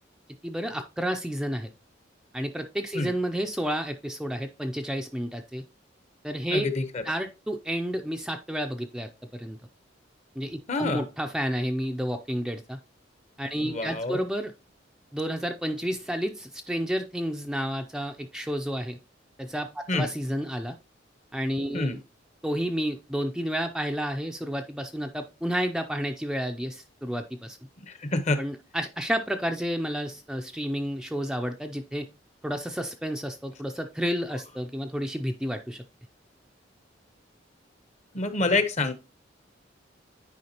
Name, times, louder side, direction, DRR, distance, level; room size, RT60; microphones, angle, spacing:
voice 1, 0.4-1.7 2.3-5.6 6.2-6.7 7.0-9.6 10.4-12.8 13.4-14.5 15.1-19.0 19.4-20.8 21.3-22.0 22.4-27.6 28.4-32.1 32.4-35.8, equal, 5° right, 5 dB, 0.4 m, -31 dB
voice 2, 6.5-7.0 10.7-11.0 13.6-14.3 19.9-20.1 21.7-22.0 27.8-28.4 38.1-38.9, left 2 dB, 40° left, 10 dB, 0.8 m, -27 dB
9.4 x 4.7 x 2.9 m, 0.29 s
head